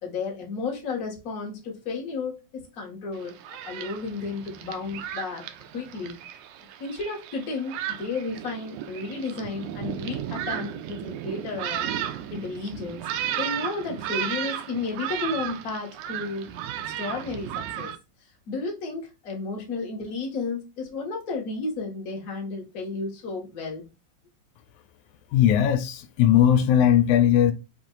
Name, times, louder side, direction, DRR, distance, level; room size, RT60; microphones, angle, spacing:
voice 1, 0.0-3.4 3.6-5.4 5.7-6.2 6.8-11.9 12.3-13.1 13.4-17.5 17.8-17.9 18.5-23.8, left 4 dB, 40° left, 1.3 m, -33 dB
Thunderstorm, 3.1-18.0, right 10 dB, 85° right, 1.9 m, -34 dB
voice 2, 25.3-27.5, left 10 dB, 85° left, 2.0 m, -19 dB
5.1 x 2.6 x 3.8 m
omnidirectional pair, 3.4 m